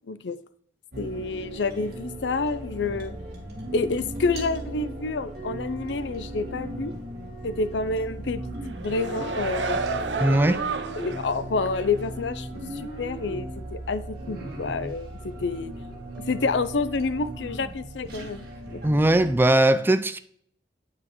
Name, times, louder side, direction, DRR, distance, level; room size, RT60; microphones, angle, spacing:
sound 1, 0.9-19.5, right 1 dB, 60° right, 1.8 m, -37 dB
voice 1, 1.0-3.2 3.7-6.9 7.4-8.6 8.8-9.9 11.0-12.5 12.8-15.7 16.3-18.8, left 3 dB, 75° left, 0.5 m, -28 dB
sound 2, 8.6-11.4 11.8-11.9, right 4 dB, 85° right, 0.6 m, -30 dB
voice 2, 10.2-10.6 18.8-20.2, right 1 dB, 10° right, 0.4 m, -20 dB
9.0 x 6.1 x 3.0 m
head